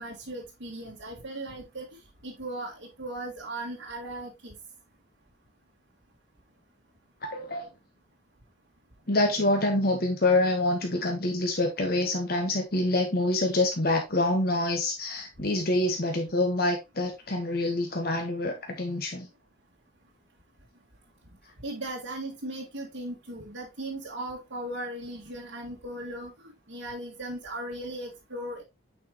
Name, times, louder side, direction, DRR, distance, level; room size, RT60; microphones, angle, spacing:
voice 1, 0.0-1.9 2.2-4.5 21.6-28.6, right 1 dB, 70° right, 2.0 m, -37 dB
voice 2, 7.2-7.7 9.1-19.3, left 2 dB, 50° left, 1.2 m, -26 dB
8.8 x 4.8 x 2.9 m
head